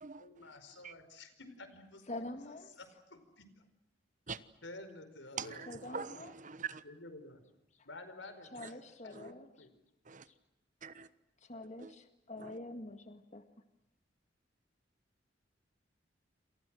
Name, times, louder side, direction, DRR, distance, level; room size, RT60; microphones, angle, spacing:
voice 1, 0.1-2.2 2.8-3.4 4.6-5.7 6.8-7.4 7.8-9.7, left 2 dB, 80° left, 10 dB, 5.0 m, -51 dB
voice 2, 2.1-2.7 5.7-6.3 7.7-7.9 8.5-9.5 10.3-10.4 11.4-13.4, left 2 dB, 40° left, 8 dB, 1.9 m, -46 dB
voice 3, 5.4-6.8 10.1-10.2 10.8-11.1 11.8-11.9, right 6 dB, 45° right, 14 dB, 1.2 m, -43 dB
28.5 x 28.0 x 6.3 m, 0.88 s
head